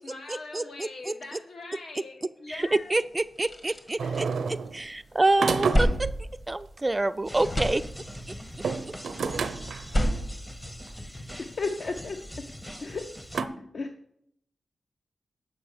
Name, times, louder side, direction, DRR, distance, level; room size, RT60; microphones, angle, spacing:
voice 1, 0.0-3.0 4.0-4.5, left 2 dB, 80° left, 2 dB, 1.8 m, -42 dB
voice 2, 0.5-0.9 2.9-4.0 4.7-6.1 6.5-7.8, right 2 dB, 20° right, 13 dB, 0.3 m, -26 dB
sound 1, 3.2-4.9 5.2-7.1 7.3-8.4 9.7-11.3, equal, 35° left, 1.4 m, -30 dB
sound 2, 4.0-4.8 5.4-6.2 8.5-9.9 10.9-11.0 11.8-11.9 13.3-13.5, right 5 dB, 90° right, 0.6 m, -29 dB
sound 3, 7.2-13.4, equal, 10° left, 0.7 m, -42 dB
voice 3, 11.4-12.2 12.8-13.0 13.7-13.9, left 4 dB, 55° left, 5 dB, 0.7 m, -32 dB
7.7 x 5.5 x 6.4 m, 0.71 s
wide cardioid pair, 105°, 0 cm